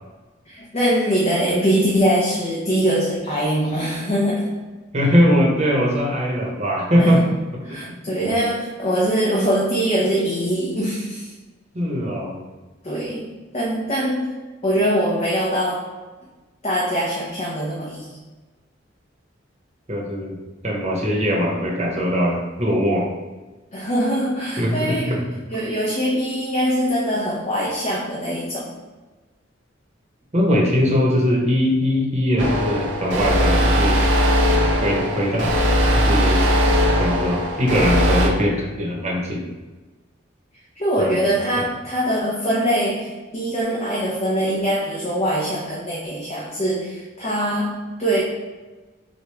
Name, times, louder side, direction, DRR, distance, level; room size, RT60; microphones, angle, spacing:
voice 1, 0.5-4.5 7.0-7.3 7.6-11.3 12.8-14.3 14.6-15.9 16.6-18.1 23.7-25.1 25.5-28.7 40.8-48.2, equal, 35° left, -5 dB, 0.8 m, -22 dB
voice 2, 4.9-7.2 11.7-12.4 19.9-20.3 20.6-23.1 24.6-25.2 30.3-34.0 34.8-35.5 35.9-36.5 37.0-39.4 41.0-41.2, equal, 35° right, -1 dB, 1.0 m, -20 dB
sound 1, 32.4-38.3, equal, 80° right, 0.7 m, -19 dB
6.4 x 2.3 x 3.3 m, 1.2 s
head